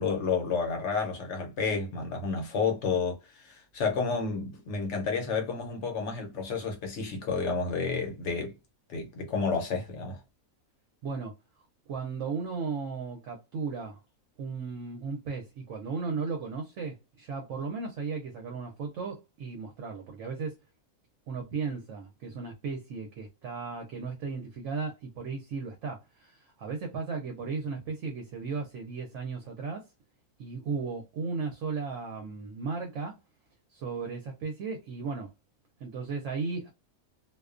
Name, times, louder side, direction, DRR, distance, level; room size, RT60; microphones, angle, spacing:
voice 1, 0.0-8.5 8.9-10.2, left 5 dB, 60° left, 0.9 m, -30 dB
voice 2, 11.0-11.3 11.9-14.0 14.4-20.6 21.3-29.9 30.4-33.2 33.7-35.3 35.8-36.7, right 4 dB, 65° right, 0.8 m, -35 dB
2.4 x 2.2 x 2.4 m
omnidirectional pair, 1.5 m